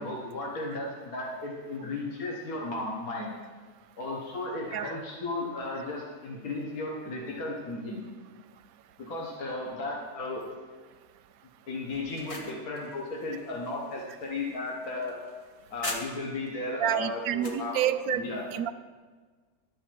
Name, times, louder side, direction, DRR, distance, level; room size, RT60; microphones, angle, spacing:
voice 1, 0.0-3.3 4.0-8.0 9.0-10.4 11.7-15.2 15.7-18.5, left 2 dB, 60° left, -2 dB, 1.7 m, -35 dB
sound 1, 11.9-16.5 16.9-17.7, left 1 dB, 25° left, 0.9 m, -42 dB
voice 2, 16.8-18.2 18.5-18.7, right 10 dB, 70° right, 11 dB, 0.9 m, -28 dB
12.0 x 5.5 x 7.6 m, 1.4 s
omnidirectional pair, 1.7 m